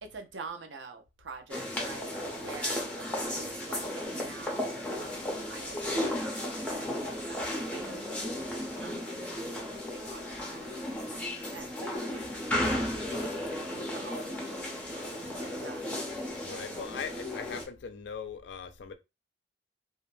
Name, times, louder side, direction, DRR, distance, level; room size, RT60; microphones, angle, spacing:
voice 1, 0.0-9.5 9.9-10.6 11.5-16.0, right 4 dB, 80° right, 0.6 m, -47 dB
sound 1, 1.5-17.6, left 1 dB, 5° left, 0.6 m, -34 dB
voice 2, 2.4-2.8 16.4-18.9, left 6 dB, 75° left, 0.4 m, -41 dB
2.3 x 2.1 x 3.0 m
head